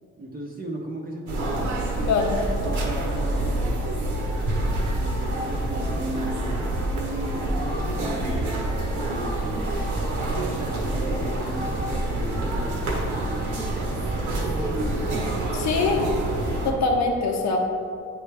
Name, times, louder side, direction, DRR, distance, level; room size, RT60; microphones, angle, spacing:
voice 1, 0.2-1.9 2.6-3.7 4.9-9.9 10.6-12.8, right 1 dB, 30° right, -2 dB, 0.8 m, -36 dB
sound 1, 1.3-16.7, right 1 dB, 80° right, 1.2 m, -27 dB
voice 2, 2.1-2.4 15.5-16.1 16.6-17.6, left 4 dB, 65° left, 1 dB, 0.8 m, -23 dB
9.3 x 3.4 x 3.3 m, 2.4 s
cardioid pair, 90°, 30 cm